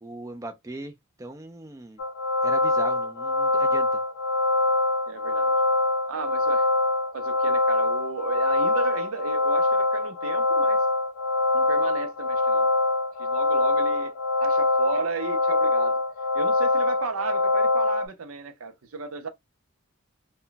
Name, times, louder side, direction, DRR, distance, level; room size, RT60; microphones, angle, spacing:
voice 1, 0.0-0.9 1.2-2.0 2.4-4.0, right 1 dB, 15° right, 0.3 m, -39 dB
sound 1, 2.0-18.1, left 2 dB, 65° left, 0.5 m, -24 dB
voice 2, 5.1-5.5 6.1-6.7 7.1-10.8 11.5-12.7 13.2-14.1 14.4-16.0 16.3-19.3, right 5 dB, 75° right, 0.5 m, -34 dB
2.1 x 2.1 x 3.8 m
head